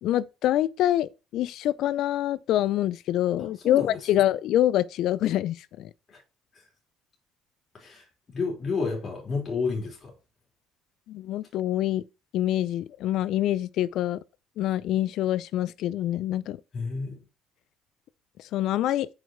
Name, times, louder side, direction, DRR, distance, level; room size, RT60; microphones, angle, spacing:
voice 1, 0.0-5.9 11.1-12.0 12.3-14.2 14.6-16.6 18.5-19.1, left 13 dB, 70° left, 0.5 m, -25 dB
voice 2, 3.4-4.2 6.1-6.2 7.7-8.1 8.3-10.1 16.7-17.2, left 4 dB, 35° left, 3.7 m, -31 dB
7.3 x 5.4 x 4.5 m
cardioid pair, 100°, 0 cm